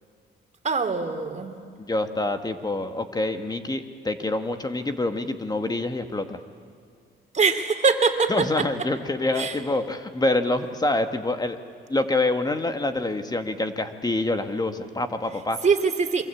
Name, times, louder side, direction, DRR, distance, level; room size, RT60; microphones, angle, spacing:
voice 1, 0.6-1.6 7.3-8.7 9.3-9.6 15.6-16.2, right 5 dB, 35° right, 6 dB, 3.2 m, -23 dB
voice 2, 1.8-6.4 8.3-11.6 11.9-15.6, left 2 dB, 20° left, 8 dB, 2.0 m, -26 dB
29.0 x 24.0 x 8.7 m, 2.3 s
cardioid pair, 90°, 20 cm